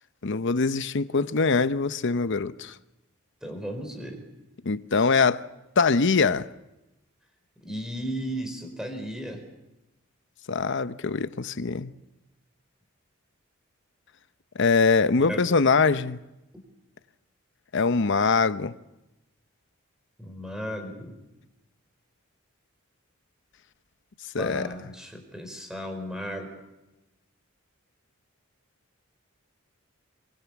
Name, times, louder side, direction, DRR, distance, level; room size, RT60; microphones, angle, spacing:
voice 1, 0.2-2.8 4.6-5.4 5.8-6.5 10.5-11.9 14.5-16.2 17.7-18.8 24.3-24.7, left 4 dB, 60° left, 0.8 m, -23 dB
voice 2, 3.4-4.2 7.6-9.4 15.2-15.6 20.2-21.2 24.4-26.5, equal, 5° right, 4.5 m, -35 dB
24.0 x 23.0 x 7.3 m
head